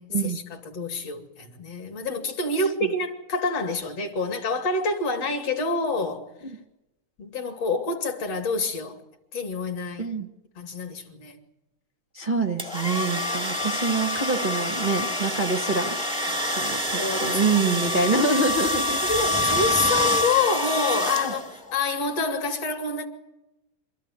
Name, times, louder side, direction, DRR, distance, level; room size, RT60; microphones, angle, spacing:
voice 1, 0.2-6.2 7.2-9.0 9.3-10.1 10.6-11.4 16.3-16.4 16.9-18.1 19.1-23.1, left 3 dB, 55° left, 3.3 m, -27 dB
voice 2, 12.1-16.0 16.5-19.0 19.4-19.6 21.2-21.3, right 3 dB, 40° right, 0.6 m, -26 dB
sound 1, 12.6-21.7, left 1 dB, 5° right, 1.1 m, -26 dB
26.5 x 14.0 x 9.8 m
omnidirectional pair, 3.5 m